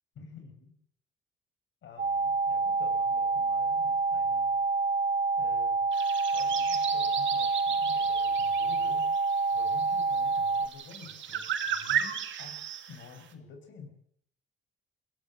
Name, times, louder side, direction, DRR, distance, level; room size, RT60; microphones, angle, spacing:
voice 1, 0.2-0.7 1.8-4.6 5.4-5.8 6.3-9.1 9.5-12.6 12.9-14.0, left 5 dB, 70° left, 5 dB, 7.0 m, -50 dB
sound 1, 2.0-10.7, right 4 dB, 40° right, 3.7 m, -27 dB
sound 2, 5.9-13.2, right 8 dB, 70° right, 2.8 m, -35 dB
23.0 x 16.5 x 8.0 m, 0.65 s
cardioid pair, 90°, 20 cm